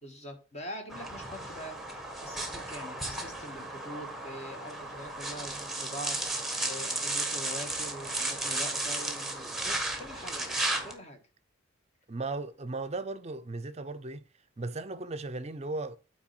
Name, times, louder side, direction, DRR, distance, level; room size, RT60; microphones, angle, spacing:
voice 1, 0.0-11.2, equal, 35° left, 1.8 m, -44 dB
sound 1, 0.9-10.9, right 2 dB, ahead, 1.2 m, -34 dB
voice 2, 12.1-14.3 14.6-16.0, right 2 dB, 30° right, 0.6 m, -36 dB
8.7 x 4.6 x 4.3 m
head